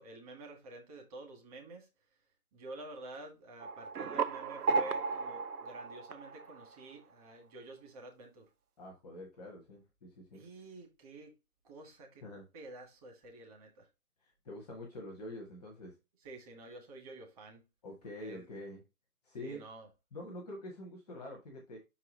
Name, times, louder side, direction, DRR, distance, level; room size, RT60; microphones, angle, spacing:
voice 1, 0.0-1.9 2.5-8.5 10.3-11.3 11.6-12.2 12.5-13.9 16.2-17.6 18.2-18.5 19.4-19.9, right 2 dB, 25° right, 1.8 m, -49 dB
sound 1, 3.6-6.9, right 4 dB, 80° right, 0.8 m, -35 dB
voice 2, 8.8-10.4 12.2-12.5 14.2-15.9 17.8-18.8 19.2-19.6 20.1-21.8, left 1 dB, ahead, 0.7 m, -46 dB
5.7 x 4.8 x 3.8 m
hypercardioid pair, 155°, 45 cm